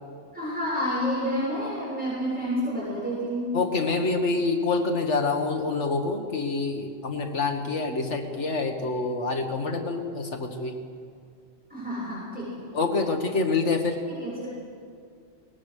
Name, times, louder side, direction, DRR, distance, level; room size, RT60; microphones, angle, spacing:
voice 1, 0.3-3.6 11.7-12.7 14.1-14.5, equal, 5° right, -8 dB, 6.9 m, -29 dB
voice 2, 3.5-10.7 12.7-14.0, left 3 dB, 70° left, 4 dB, 1.9 m, -26 dB
22.5 x 19.5 x 6.5 m, 2.2 s
omnidirectional pair, 1.2 m